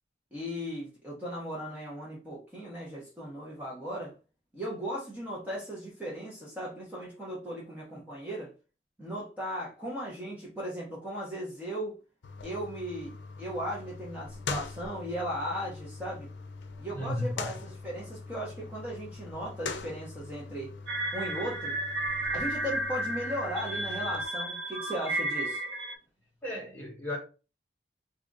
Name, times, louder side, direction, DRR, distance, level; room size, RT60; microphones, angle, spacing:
voice 1, 0.3-4.1 4.5-8.5 9.0-11.9 12.4-13.1 13.4-16.3 16.8-20.7 21.1-21.7 22.3-25.6, equal, 10° right, 0.8 m, -37 dB
sound 1, 12.2-24.2, left 4 dB, 90° left, 0.5 m, -42 dB
voice 2, 16.9-17.3 26.4-27.2, left 1 dB, 10° left, 1.2 m, -34 dB
sound 2, 20.9-26.0, right 1 dB, 75° right, 0.7 m, -33 dB
2.8 x 2.4 x 3.8 m
head